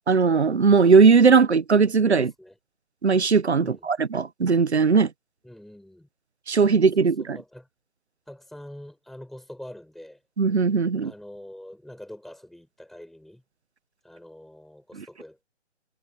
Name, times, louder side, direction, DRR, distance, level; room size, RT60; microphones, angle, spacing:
voice 1, 0.1-2.3 3.0-5.1 6.5-7.4 10.4-11.1, right 5 dB, 65° right, 1.2 m, -18 dB
voice 2, 2.1-2.6 3.6-3.9 5.4-6.1 6.8-7.7 8.3-10.2 11.0-13.4 14.0-15.4, left 1 dB, ahead, 6.0 m, -44 dB
figure-of-eight pair, 145°, 35 cm